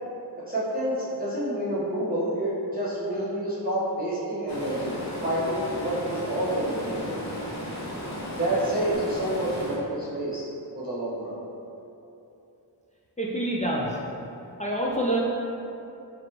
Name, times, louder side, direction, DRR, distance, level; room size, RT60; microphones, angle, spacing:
voice 1, 0.5-4.9 5.2-7.2 8.3-10.5 10.7-11.3, right 1 dB, 20° right, -11 dB, 1.1 m, -28 dB
Stream, 4.5-9.8, left 1 dB, 40° left, 0.8 m, -35 dB
voice 2, 13.2-14.0 14.6-15.2, right 1 dB, 20° left, -5 dB, 0.4 m, -26 dB
4.2 x 3.0 x 2.9 m, 2.8 s
wide cardioid pair, 75°, 41 cm